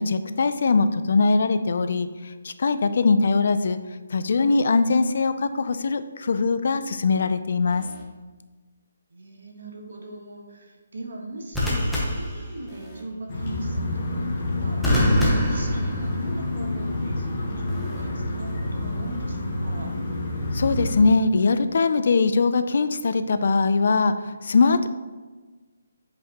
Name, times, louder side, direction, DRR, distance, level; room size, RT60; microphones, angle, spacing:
voice 1, 0.0-3.8 4.1-7.8 20.5-24.9, left 4 dB, 50° left, 11 dB, 0.4 m, -21 dB
sound 1, 7.7-8.0 11.5-13.0 14.8-16.5 17.7-18.0, equal, ahead, 0.8 m, -25 dB
voice 2, 9.1-19.9, right 2 dB, 70° right, 1 dB, 1.5 m, -39 dB
sound 2, 13.3-21.0, left 1 dB, 30° left, 1.1 m, -28 dB
8.0 x 5.2 x 2.9 m, 1.3 s
hypercardioid pair, 175°, 0 cm